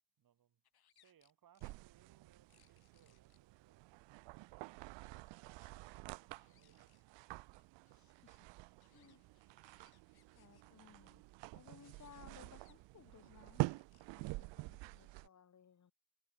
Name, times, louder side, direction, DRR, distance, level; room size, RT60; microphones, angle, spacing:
voice 1, 0.2-0.6 0.9-4.3 5.2-7.2, right 10 dB, 45° right, 2.3 m, -72 dB
sound 1, 0.6-1.8 2.5-3.4 4.3-5.9 6.2-7.0 7.4-10.6 11.7-12.7 13.6-14.1, left 10 dB, 55° left, 6.1 m, -75 dB
sound 2, 1.6-15.3, right 22 dB, 70° right, 0.6 m, -47 dB
voice 2, 8.8-9.3 10.3-11.2 11.5-13.6 14.1-15.9, left 7 dB, 40° left, 3.1 m, -61 dB
cardioid pair, 95°, 46 cm